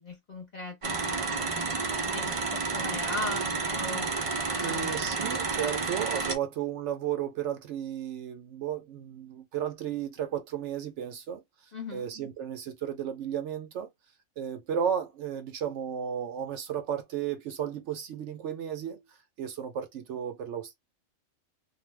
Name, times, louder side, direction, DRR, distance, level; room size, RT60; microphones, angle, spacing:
voice 1, 0.0-1.8 2.1-4.1 4.5-5.0 11.7-12.1, left 2 dB, 35° left, 0.9 m, -39 dB
sound 1, 0.8-6.4, right 4 dB, 45° right, 0.4 m, -30 dB
voice 2, 4.6-11.4 11.9-13.9 14.4-19.0 19.4-20.7, right 9 dB, 70° right, 0.8 m, -34 dB
2.5 x 2.2 x 3.2 m
omnidirectional pair, 1.4 m